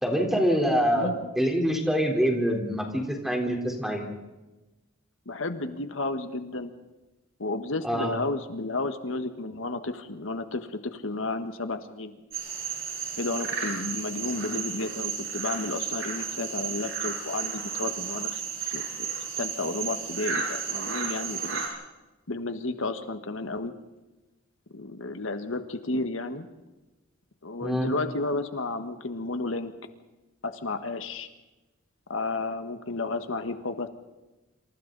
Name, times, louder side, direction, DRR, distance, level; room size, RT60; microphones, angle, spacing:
voice 1, 0.0-1.1 1.4-4.0 7.8-8.1 27.6-27.9, equal, ahead, 1 dB, 3.9 m, -25 dB
voice 2, 0.9-1.3 5.2-6.7 7.4-12.1 13.2-18.8 19.4-21.7 22.3-23.7 24.7-26.5 27.4-29.7 30.4-31.3 32.1-33.9, left 2 dB, 75° left, 8 dB, 1.5 m, -32 dB
sound 1, 12.3-21.7, right 6 dB, 80° right, 7.4 m, -33 dB
27.5 x 27.5 x 4.1 m, 1.1 s
head